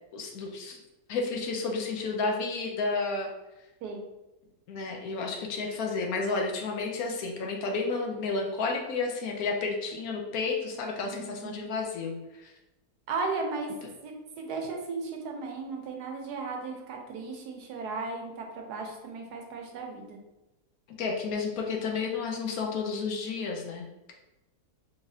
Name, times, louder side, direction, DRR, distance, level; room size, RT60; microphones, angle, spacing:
voice 1, 0.1-0.8 1.1-3.3 4.7-12.5 21.0-24.1, left 4 dB, 70° left, 1 dB, 1.1 m, -31 dB
voice 2, 11.0-11.7 13.1-13.7 14.0-20.2, right 4 dB, 90° right, 2 dB, 1.3 m, -36 dB
3.9 x 3.0 x 2.7 m, 0.97 s
omnidirectional pair, 1.7 m